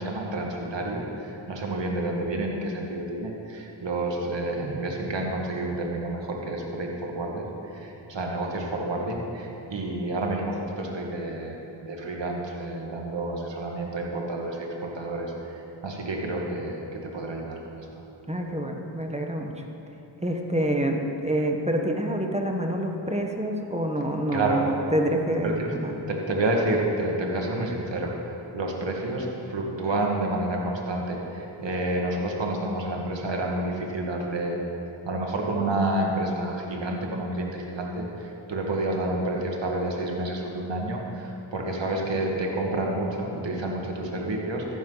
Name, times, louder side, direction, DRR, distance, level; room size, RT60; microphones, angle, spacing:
voice 1, 0.0-17.9 24.3-24.7 25.4-25.7 26.1-28.1 28.5-34.6 35.0-44.8, right 2 dB, 70° right, 0 dB, 2.1 m, -29 dB
voice 2, 18.3-19.6 20.2-25.9, right 1 dB, 15° right, 2 dB, 1.4 m, -27 dB
14.5 x 11.5 x 4.1 m, 2.9 s
cardioid pair, 55°, 46 cm